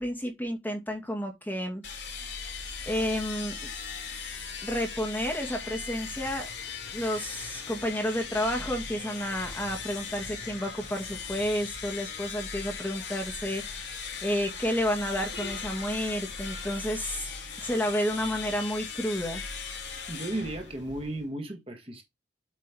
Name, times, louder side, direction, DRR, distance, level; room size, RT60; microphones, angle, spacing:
voice 1, 0.0-1.8 2.9-3.7 4.6-6.5 6.9-13.8 14.2-17.3 17.6-19.5, equal, 10° left, 2.3 m, -31 dB
sound 1, 1.8-21.3, left 5 dB, 70° left, 2.9 m, -39 dB
voice 2, 20.1-22.0, right 1 dB, 30° right, 1.5 m, -34 dB
8.2 x 5.2 x 3.6 m
head